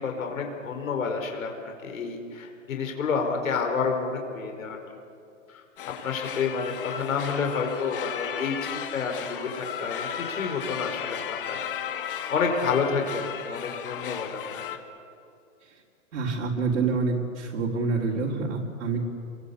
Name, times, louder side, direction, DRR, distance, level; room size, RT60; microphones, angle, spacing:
voice 1, 0.0-4.8 5.5-5.6 6.0-11.6 12.3-14.4, left 5 dB, 75° left, 3 dB, 5.0 m, -29 dB
sound 1, 5.8-14.8, left 9 dB, 40° left, 1.8 m, -35 dB
voice 2, 16.1-19.0, right 4 dB, 70° right, -5 dB, 4.4 m, -27 dB
29.5 x 23.0 x 8.5 m, 2.5 s
hypercardioid pair, 175°, 41 cm